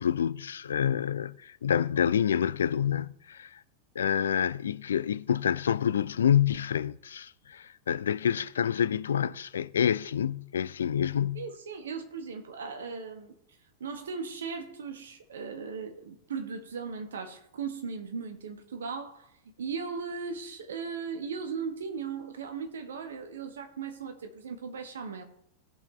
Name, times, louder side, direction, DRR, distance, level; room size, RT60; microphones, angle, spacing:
voice 1, 0.0-3.6 4.0-11.5, left 8 dB, 65° left, 0.3 m, -27 dB
voice 2, 11.3-13.3 13.8-19.3 19.6-25.2, right 5 dB, 65° right, 1.4 m, -37 dB
17.0 x 5.7 x 3.2 m
figure-of-eight pair, 90°, 0 cm